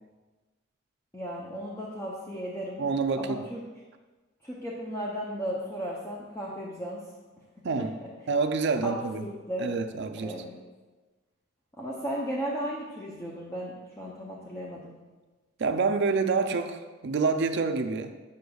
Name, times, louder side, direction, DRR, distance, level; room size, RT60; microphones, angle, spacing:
voice 1, 1.1-2.9 3.2-3.6 4.4-7.0 7.8-8.1 8.8-8.9 9.2-9.7 10.2-10.6 11.8-14.9, equal, 15° left, -5 dB, 0.6 m, -35 dB
voice 2, 2.8-3.3 7.6-7.9 8.3-9.2 9.6-10.3 15.6-18.1, right 4 dB, 55° right, 8 dB, 0.4 m, -27 dB
6.8 x 6.6 x 2.3 m, 1.3 s
head